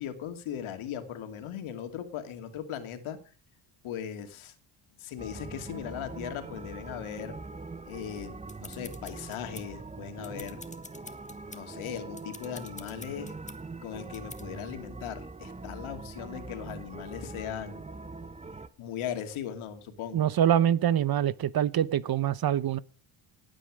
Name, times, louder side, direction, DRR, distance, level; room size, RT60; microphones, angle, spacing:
voice 1, 0.0-3.2 3.8-4.5 5.0-7.4 7.9-10.6 11.5-13.3 13.8-17.9 18.8-20.3, left 9 dB, 80° left, 2.6 m, -38 dB
sound 1, 5.2-18.7, right 3 dB, 15° right, 1.0 m, -43 dB
sound 2, 8.2-9.8 10.2-11.6 12.1-13.6 14.1-14.4, left 3 dB, 15° left, 1.9 m, -47 dB
voice 2, 20.1-22.8, right 10 dB, 50° right, 0.9 m, -25 dB
18.0 x 9.1 x 6.3 m
cardioid pair, 85°, 48 cm